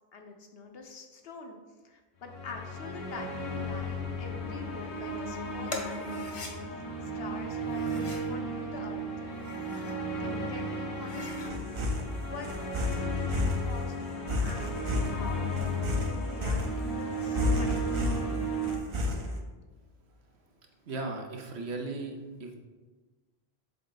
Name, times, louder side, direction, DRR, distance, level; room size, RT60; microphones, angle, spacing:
voice 1, 0.1-1.6 1.8-6.5 7.1-9.1 10.2-11.5 12.2-13.4 13.7-14.1 14.4-18.4, left 4 dB, 65° left, 4 dB, 1.0 m, -45 dB
sound 1, 2.2-18.8, right 1 dB, 85° left, 1.4 m, -35 dB
sound 2, 3.2-19.4, left 1 dB, 35° right, 0.6 m, -35 dB
sound 3, 5.7-6.5 7.6-8.3 9.2-10.0 10.4-10.5 10.9-11.5, left 2 dB, 30° left, 0.9 m, -41 dB
voice 2, 20.1-20.4 20.8-22.5, right 3 dB, 75° right, 2 dB, 1.2 m, -37 dB
7.5 x 3.8 x 3.9 m, 1.3 s
omnidirectional pair, 1.1 m